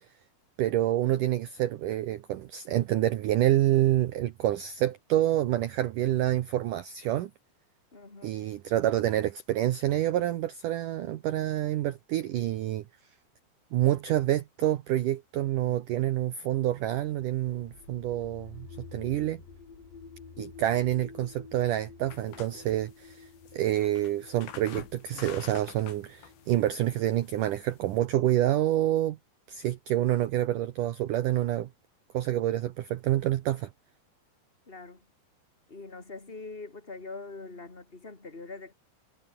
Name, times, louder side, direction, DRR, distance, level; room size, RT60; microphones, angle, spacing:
voice 1, 0.6-7.3 8.2-12.8 13.7-19.4 20.4-29.2 29.5-31.7 32.1-33.7, right 13 dB, 85° right, 1.8 m, -27 dB
voice 2, 7.9-8.5 34.7-35.0 35.7-38.7, left 3 dB, 15° left, 3.2 m, -43 dB
sound 1, 16.8-28.6, left 5 dB, 75° left, 9.2 m, -51 dB
sound 2, 22.1-28.0, left 9 dB, 90° left, 5.2 m, -48 dB
omnidirectional pair, 5.1 m